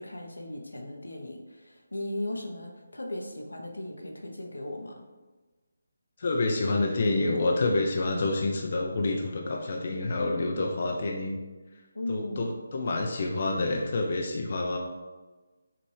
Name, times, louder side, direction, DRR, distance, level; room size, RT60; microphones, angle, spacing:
voice 1, 0.0-5.0 11.9-12.5, left 1 dB, 85° left, 2 dB, 0.8 m, -37 dB
voice 2, 6.2-11.4 12.1-14.8, left 2 dB, 45° left, 1 dB, 0.5 m, -28 dB
5.6 x 2.6 x 3.3 m, 1.2 s
figure-of-eight pair, 155°, 0 cm